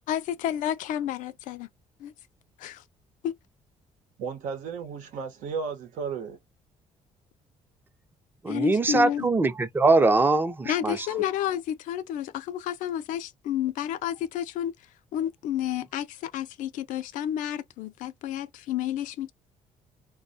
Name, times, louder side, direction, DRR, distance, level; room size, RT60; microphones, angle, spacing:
voice 1, 0.1-1.7 2.0-2.1 2.6-2.8 3.2-3.3 8.5-9.3 10.6-14.7 15.1-19.3, left 11 dB, 80° left, 0.4 m, -30 dB
voice 2, 4.2-6.4, right 5 dB, 80° right, 0.9 m, -34 dB
voice 3, 8.4-11.0, right 3 dB, 15° right, 0.5 m, -22 dB
2.2 x 2.2 x 2.6 m
cardioid pair, 95°, 13 cm